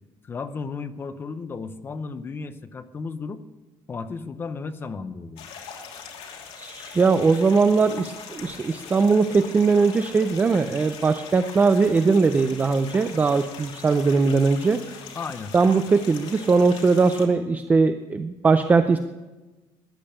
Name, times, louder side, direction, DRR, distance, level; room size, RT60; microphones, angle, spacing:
voice 1, 0.2-3.4 3.9-5.5 15.1-15.5, left 4 dB, 25° left, 11 dB, 0.7 m, -34 dB
sound 1, 5.4-17.3, left 6 dB, 85° left, 2.9 m, -41 dB
voice 2, 6.6-14.8 15.5-19.0, right 4 dB, 15° right, 9 dB, 0.5 m, -20 dB
14.0 x 10.5 x 8.8 m, 1.2 s
cardioid pair, 175°, 10 cm